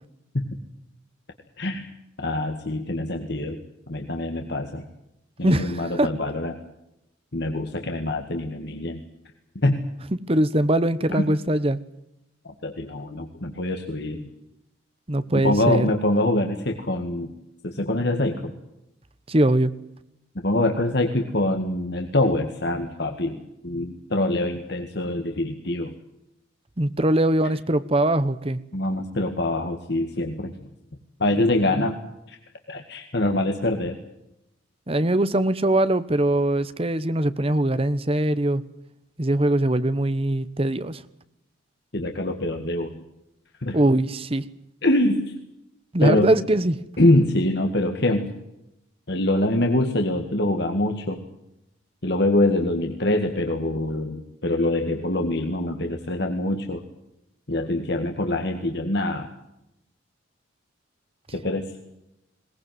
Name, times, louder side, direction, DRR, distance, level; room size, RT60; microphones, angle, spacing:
voice 1, 2.2-3.6 3.9-4.8 5.4-6.5 7.3-9.0 9.6-9.9 11.1-11.2 12.4-14.3 15.3-17.3 17.6-18.5 20.4-25.9 28.7-30.5 31.2-32.0 32.3-32.4 32.7-34.0 41.9-43.0 43.6-43.8 44.8-45.4 46.0-46.4 47.0-48.3 49.1-51.2 52.0-56.8 57.5-59.3 61.3-61.6, left 1 dB, 55° left, 4 dB, 2.0 m, -24 dB
voice 2, 5.4-6.1 10.1-11.8 15.1-15.9 19.3-19.7 26.8-28.6 31.7-31.9 34.9-38.6 39.2-41.0 43.7-44.4 45.9-46.8, right 1 dB, 30° right, 14 dB, 1.0 m, -22 dB
21.5 x 19.0 x 9.4 m, 0.86 s
head